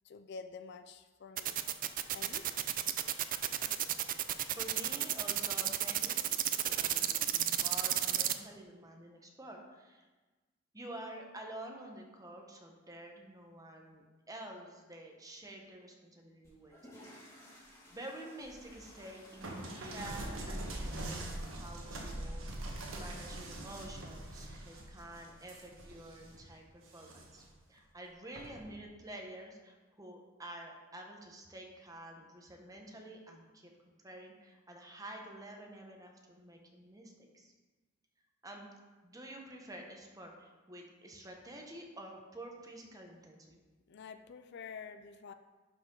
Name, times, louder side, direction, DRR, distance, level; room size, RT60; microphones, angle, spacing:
voice 1, 0.0-1.6 2.1-2.5 43.9-45.3, left 5 dB, 60° left, 10 dB, 0.4 m, -48 dB
sound 1, 1.4-8.3, right 12 dB, 45° right, 0.4 m, -32 dB
voice 2, 4.6-10.1 10.7-17.1 17.9-27.4 27.7-33.7 34.0-37.5 38.4-38.7 39.0-43.6, right 1 dB, 20° right, 1 dB, 1.1 m, -49 dB
sound 2, 16.4-22.4, equal, 15° left, 2.3 m, -57 dB
sound 3, 19.4-26.4 26.8-27.5 28.3-28.7, right 1 dB, 80° right, 1.4 m, -43 dB
11.5 x 5.1 x 3.9 m, 1.3 s
head